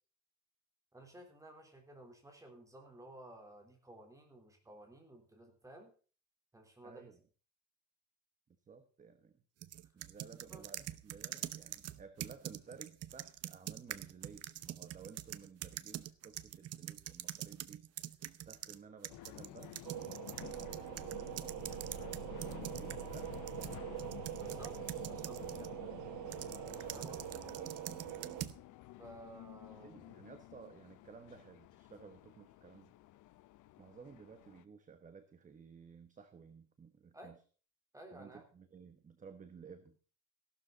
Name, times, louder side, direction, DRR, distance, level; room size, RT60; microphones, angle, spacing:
voice 1, 0.9-5.9 6.5-7.1 10.5-10.7 24.3-25.7 26.7-27.4 29.0-30.1 37.1-37.3 37.9-38.4, right 1 dB, 10° right, 3 dB, 3.9 m, -55 dB
voice 2, 6.8-7.2 8.7-9.4 9.9-17.8 18.5-19.8 20.1-23.3 26.3-27.7 29.7-32.9 33.8-37.4 38.1-40.1, right 5 dB, 25° right, 9 dB, 1.2 m, -55 dB
sound 1, 9.6-18.8 19.0-25.7 26.3-28.6, right 12 dB, 55° right, 0.9 m, -45 dB
sound 2, 19.1-34.6, left 16 dB, 90° left, 0.8 m, -51 dB
sound 3, 19.8-28.4, right 15 dB, 90° right, 0.6 m, -44 dB
15.0 x 12.5 x 4.1 m, 0.39 s
cardioid pair, 170°, 29 cm